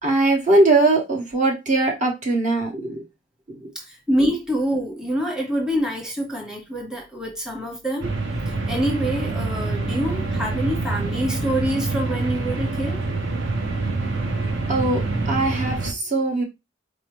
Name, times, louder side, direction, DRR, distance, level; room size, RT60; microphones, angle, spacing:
voice 1, 0.0-3.0 14.7-16.4, right 2 dB, 40° right, 0.9 m, -20 dB
voice 2, 3.7-8.1 8.7-13.0, equal, 5° right, 0.9 m, -26 dB
sound 1, 8.0-15.9, right 3 dB, 65° right, 0.9 m, -26 dB
4.4 x 2.7 x 3.0 m
head